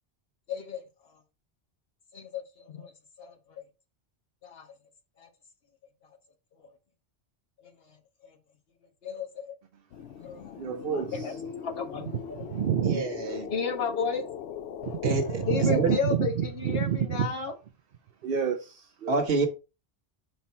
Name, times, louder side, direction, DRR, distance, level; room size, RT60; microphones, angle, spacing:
voice 1, 0.5-0.8 2.1-2.9 3.2-3.6 4.4-4.7 5.2-5.3 7.6-8.0 8.2-8.4 9.0-9.5 10.2-10.6 10.9-12.1 13.5-14.2 15.5-17.5, left 5 dB, 65° left, 1.5 m, -33 dB
Winds of Saturn, 9.9-16.0, left 8 dB, 90° left, 0.9 m, -39 dB
voice 2, 10.6-11.3 12.4-13.0 14.8-15.1 15.4-17.3 18.2-19.2, right 8 dB, 60° right, 0.9 m, -28 dB
voice 3, 12.8-13.5 15.0-15.9 19.1-19.5, right 3 dB, 85° right, 1.4 m, -28 dB
5.6 x 4.5 x 4.3 m
omnidirectional pair, 1.1 m